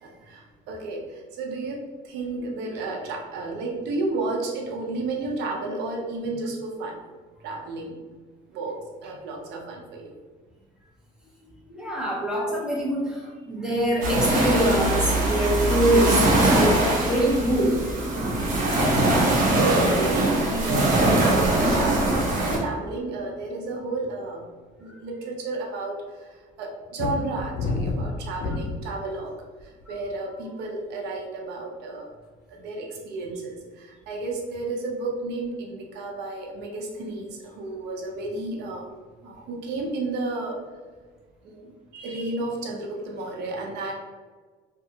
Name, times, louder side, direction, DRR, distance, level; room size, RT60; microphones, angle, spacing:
voice 1, 0.0-7.0 7.4-8.0 8.5-10.1 18.8-24.4 24.8-25.9 26.2-26.3 26.6-29.3 29.6-32.1 32.5-38.9 39.2-40.6 41.4-43.9, right 2 dB, 85° right, 0 dB, 0.6 m, -32 dB
voice 2, 11.7-18.5, right 1 dB, 5° right, -4 dB, 0.8 m, -24 dB
sound 1, 14.0-22.6, right 1 dB, 50° right, 0.8 m, -22 dB
sound 2, 27.0-28.9 29.6-30.0, left 3 dB, 65° left, 0.5 m, -28 dB
2.7 x 2.3 x 2.7 m, 1.4 s
cardioid pair, 110°, 17 cm